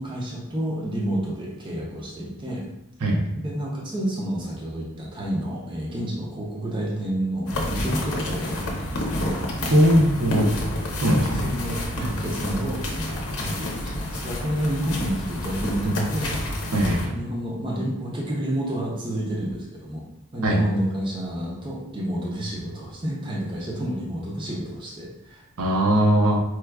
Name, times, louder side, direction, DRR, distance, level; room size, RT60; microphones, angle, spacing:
voice 1, 0.0-2.6 3.4-9.4 11.2-16.3 17.0-20.0 20.3-25.4, right 1 dB, 20° right, -4 dB, 0.5 m, -30 dB
sound 1, 7.5-17.1, left 1 dB, 80° left, 0.7 m, -29 dB
voice 2, 9.7-10.5 11.0-11.5 16.7-17.0 20.4-20.6 25.6-26.4, equal, 75° right, -1 dB, 0.7 m, -19 dB
4.4 x 2.3 x 2.3 m, 0.90 s
head